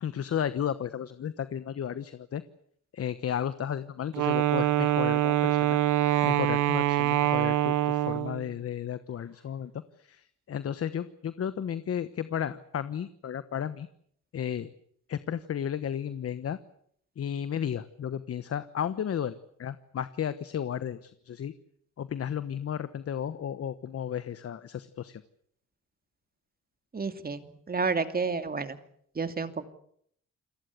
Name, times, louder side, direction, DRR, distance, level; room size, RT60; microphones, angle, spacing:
voice 1, 0.0-2.4 2.9-5.8 6.2-9.7 10.0-13.9 14.3-14.7 15.1-16.6 17.2-21.5 22.0-25.2, left 9 dB, 50° left, 13 dB, 1.2 m, -33 dB
Wind instrument woodwind instrument, 4.1-8.5, right 13 dB, 80° right, 1.0 m, -25 dB
voice 2, 26.9-28.8 29.2-29.6, right 4 dB, 30° right, 9 dB, 2.6 m, -30 dB
29.0 x 18.5 x 8.3 m, 0.67 s
cardioid pair, 90°, 30 cm